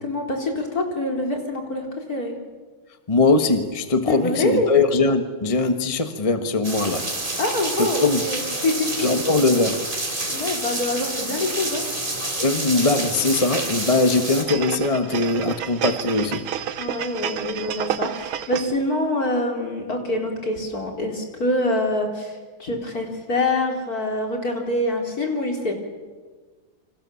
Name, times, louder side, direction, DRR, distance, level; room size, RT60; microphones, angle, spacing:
voice 1, 0.0-2.3 4.1-4.8 7.4-9.1 10.3-11.8 16.8-25.7, left 2 dB, 45° left, 2 dB, 4.5 m, -25 dB
voice 2, 3.1-7.1 7.8-8.2 9.0-9.8 12.4-16.5, left 3 dB, 20° left, 8 dB, 1.0 m, -21 dB
sound 1, 6.6-14.4, right 2 dB, 20° right, 3.7 m, -28 dB
sound 2, 14.5-18.9 19.3-19.4, right 10 dB, 80° right, 1.8 m, -30 dB
29.0 x 26.0 x 7.1 m, 1.4 s
omnidirectional pair, 2.3 m